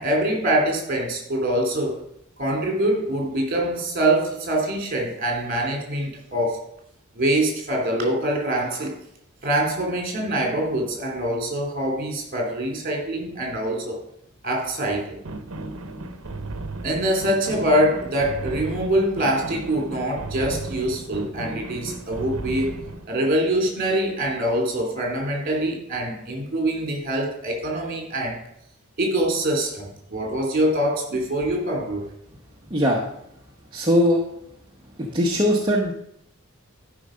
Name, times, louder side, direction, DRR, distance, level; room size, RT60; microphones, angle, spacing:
voice 1, 0.0-2.0 2.4-6.6 7.1-8.9 9.4-14.0 14.4-15.2 16.8-22.8 23.1-28.4 29.0-32.0, right 1 dB, 40° right, 1 dB, 2.9 m, -24 dB
sound 1, 15.2-23.1, right 2 dB, 75° right, 0.9 m, -35 dB
voice 2, 33.7-34.2 35.1-35.9, equal, 20° right, -3 dB, 1.1 m, -19 dB
12.0 x 5.5 x 5.1 m, 0.75 s
head